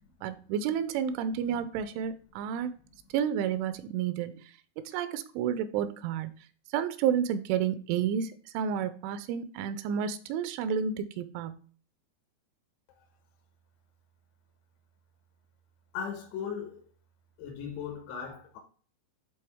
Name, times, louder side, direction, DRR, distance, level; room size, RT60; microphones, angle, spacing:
voice 1, 0.2-2.7 3.1-4.4 4.8-6.4 6.7-11.6, right 8 dB, 85° right, 2.9 m, -31 dB
voice 2, 15.9-16.8 17.4-18.6, left 7 dB, 75° left, 3.3 m, -38 dB
11.0 x 3.8 x 3.5 m
omnidirectional pair, 5.5 m